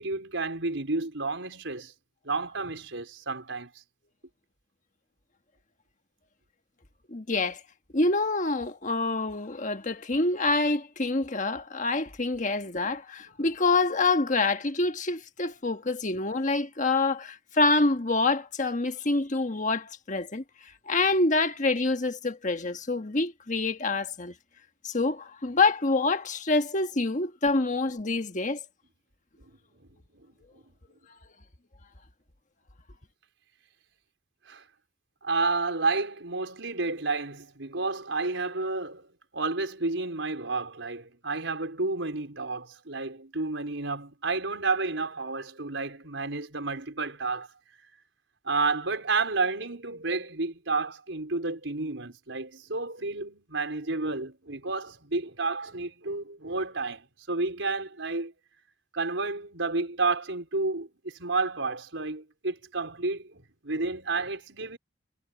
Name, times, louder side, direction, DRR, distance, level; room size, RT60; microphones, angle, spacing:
voice 1, 0.0-1.9 2.2-3.7 29.4-29.5 34.5-34.6 35.2-39.1 39.3-47.5 48.4-58.3 58.9-64.8, right 3 dB, 80° right, 4.7 m, -31 dB
voice 2, 7.1-7.6 7.9-20.4 20.9-24.3 24.8-28.6, left 3 dB, 40° left, 1.4 m, -26 dB
head